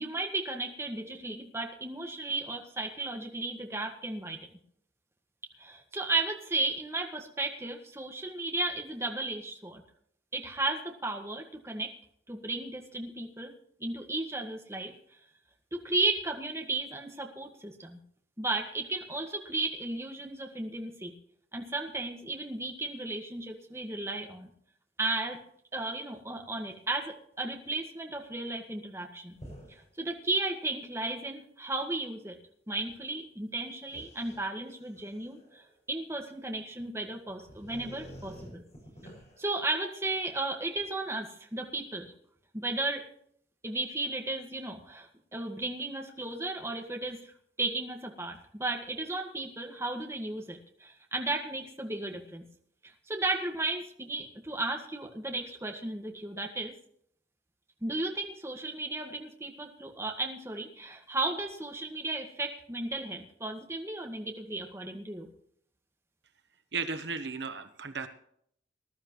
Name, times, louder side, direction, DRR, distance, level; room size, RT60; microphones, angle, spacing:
voice 1, 0.0-4.4 5.6-9.8 10.3-11.9 12.3-13.5 13.8-14.9 15.7-18.0 18.4-21.1 21.5-24.5 25.0-25.4 25.7-29.3 30.0-32.4 32.7-35.6 35.9-38.6 39.4-42.1 42.5-43.0 43.6-47.3 47.6-52.4 53.1-56.7 57.8-65.3, right 2 dB, 15° right, 2 dB, 1.7 m, -34 dB
sound 1, 29.3-29.9 30.4-30.5 32.9-33.0 33.8-35.7 36.8-36.9 37.3-39.6, equal, 40° left, 6.5 m, -49 dB
voice 2, 66.7-68.1, right 5 dB, 75° right, 9 dB, 1.1 m, -35 dB
20.0 x 12.0 x 3.1 m, 0.66 s
head